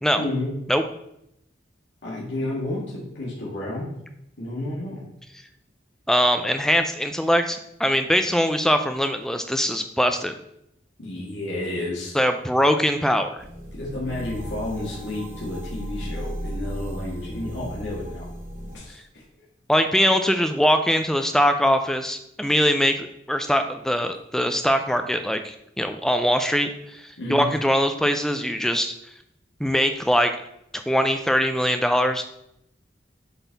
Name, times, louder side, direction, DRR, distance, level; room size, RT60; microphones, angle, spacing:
voice 1, 0.2-0.5 2.0-3.9 4.4-5.0 11.0-12.1 13.7-18.3 18.7-19.2 27.2-27.5, left 1 dB, 75° left, -6 dB, 1.7 m, -31 dB
voice 2, 6.1-10.3 12.1-13.4 19.7-28.9 29.6-30.3 30.7-32.2, equal, 5° left, 7 dB, 0.4 m, -22 dB
sound 1, 13.4-18.8, equal, 45° right, 2.1 m, -35 dB
7.9 x 4.1 x 4.0 m, 0.79 s
head